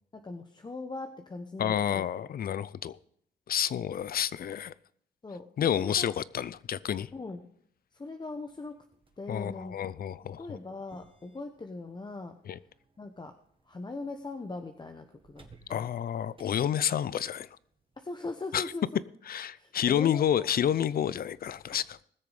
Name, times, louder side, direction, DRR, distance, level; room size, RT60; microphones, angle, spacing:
voice 1, 0.1-2.1 5.2-5.5 5.8-6.1 7.1-7.4 7.9-8.8 9.2-9.7 10.4-12.4 13.0-13.3 13.6-15.9 18.0-19.0 19.5-20.5, left 3 dB, 20° left, 1.0 m, -40 dB
voice 2, 1.6-3.0 3.5-4.7 5.6-7.1 9.3-10.4 12.5-12.6 15.7-17.5 18.5-18.6 19.3-22.0, left 9 dB, 50° left, 0.6 m, -29 dB
sound 1, 8.3-18.2, right 4 dB, 25° right, 1.7 m, -63 dB
19.5 x 6.8 x 5.0 m
cardioid pair, 90°, 20 cm